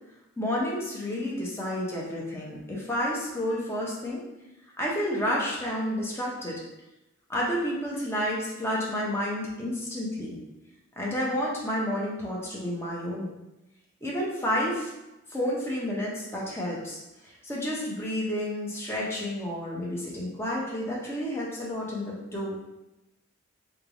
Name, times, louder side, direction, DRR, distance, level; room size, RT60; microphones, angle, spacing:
voice 1, 0.4-4.2 4.8-6.6 7.3-10.4 11.0-13.3 14.0-14.9 15.3-22.6, equal, 10° left, -4 dB, 0.6 m, -30 dB
3.2 x 2.3 x 3.8 m, 0.96 s
head